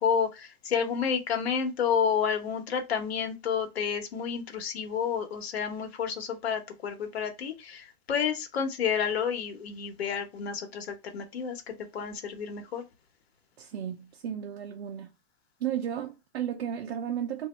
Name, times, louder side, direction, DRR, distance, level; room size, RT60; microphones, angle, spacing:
voice 1, 0.0-12.8, left 7 dB, 85° left, 1.0 m, -30 dB
voice 2, 13.6-15.1 15.6-17.5, right 9 dB, 75° right, 0.7 m, -34 dB
3.0 x 2.7 x 4.2 m
hypercardioid pair, 165°, 31 cm